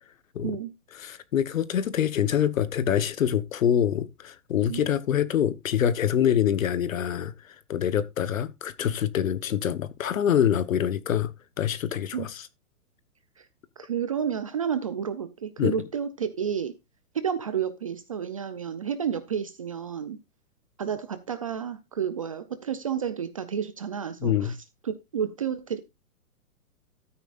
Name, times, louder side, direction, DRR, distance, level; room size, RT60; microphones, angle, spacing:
voice 1, 1.0-11.3 11.6-12.5 15.6-15.7 24.2-24.5, left 9 dB, 60° left, 1.2 m, -25 dB
voice 2, 13.8-16.7 17.1-20.2 20.8-24.6 24.8-25.8, right 8 dB, 25° right, 0.5 m, -31 dB
13.0 x 9.4 x 2.5 m
hypercardioid pair, 150°, 46 cm